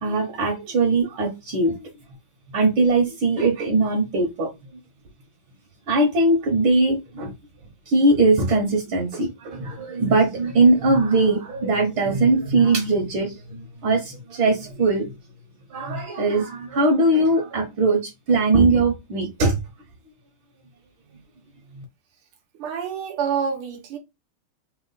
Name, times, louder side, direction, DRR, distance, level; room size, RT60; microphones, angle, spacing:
voice 1, 0.0-1.9 2.5-4.5 5.9-7.3 7.9-13.6 13.8-15.1 15.7-19.6 21.8-21.9, right 2 dB, 70° right, 1.9 m, -20 dB
voice 2, 22.6-24.0, right 7 dB, 90° right, 2.0 m, -27 dB
4.2 x 2.9 x 4.0 m
omnidirectional pair, 2.3 m